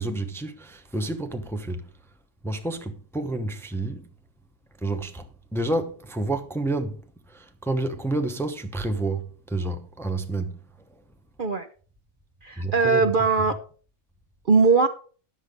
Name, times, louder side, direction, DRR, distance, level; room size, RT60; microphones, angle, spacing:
voice 1, 0.0-1.9 2.4-4.1 4.8-7.0 7.3-10.6 12.6-13.1, right 2 dB, ahead, 0.8 m, -29 dB
voice 2, 12.4-13.6 14.5-14.9, right 4 dB, 45° right, 0.8 m, -20 dB
10.5 x 7.3 x 5.2 m
omnidirectional pair, 1.4 m